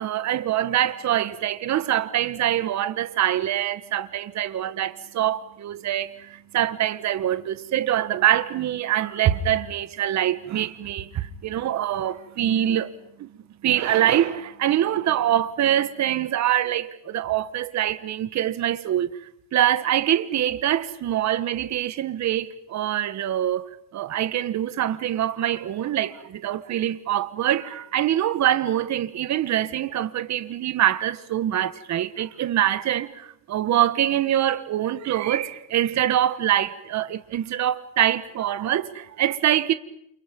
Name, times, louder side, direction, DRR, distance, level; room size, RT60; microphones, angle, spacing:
voice 1, 0.0-12.9 13.2-13.3 13.6-19.1 19.5-23.6 23.9-39.7, right 11 dB, 40° right, 1.6 m, -24 dB
29.5 x 28.5 x 5.4 m
cardioid pair, 130°, 42 cm